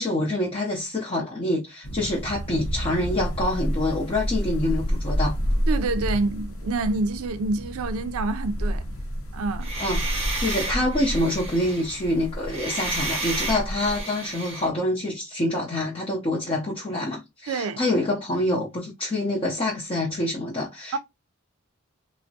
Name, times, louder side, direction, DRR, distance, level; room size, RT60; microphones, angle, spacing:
voice 1, 0.0-5.4 9.8-21.0, left 1 dB, 25° left, 0.5 m, -26 dB
sound 1, 1.8-14.0, equal, 75° left, 0.7 m, -30 dB
voice 2, 5.7-8.8 9.3-9.7 17.5-17.8 20.9-21.0, right 3 dB, 80° right, 0.4 m, -27 dB
sound 2, 9.6-14.7, right 2 dB, 30° right, 0.7 m, -32 dB
3.3 x 2.0 x 2.6 m
head